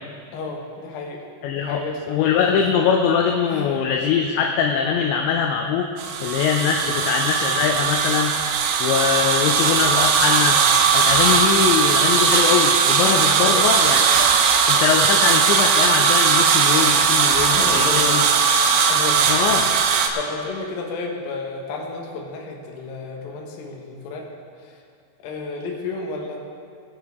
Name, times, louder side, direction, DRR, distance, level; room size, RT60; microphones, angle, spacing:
voice 1, 0.3-1.2 1.6-2.2 2.5-2.6 3.5-3.9 6.8-7.0 13.3-13.6 17.5-18.2 18.9-19.3 20.1-24.3 25.2-26.4, left 3 dB, 65° left, 0 dB, 2.6 m, -31 dB
voice 2, 1.4-1.8 2.1-5.9 6.2-8.3 8.8-10.6 10.9-14.3 14.7-18.2 19.3-19.7, left 7 dB, 80° left, 2 dB, 2.7 m, -22 dB
sound 1, 6.0-20.1, right 6 dB, 85° right, 3.2 m, -18 dB
19.0 x 9.8 x 3.6 m, 2.3 s
omnidirectional pair, 5.6 m